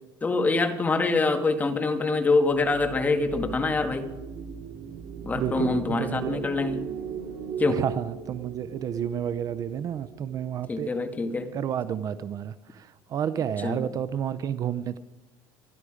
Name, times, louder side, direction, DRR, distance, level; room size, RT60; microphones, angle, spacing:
voice 1, 0.2-4.0 5.2-6.8 7.6-7.8 10.7-11.5 13.6-13.9, left 3 dB, 15° left, 6 dB, 1.7 m, -25 dB
sound 1, 2.4-10.8, right 7 dB, 60° right, 2.2 m, -38 dB
voice 2, 5.4-6.4 7.7-11.0 11.5-15.0, right 9 dB, 40° right, 14 dB, 0.6 m, -31 dB
24.5 x 11.0 x 5.0 m, 1.1 s
cardioid pair, 140°, 10 cm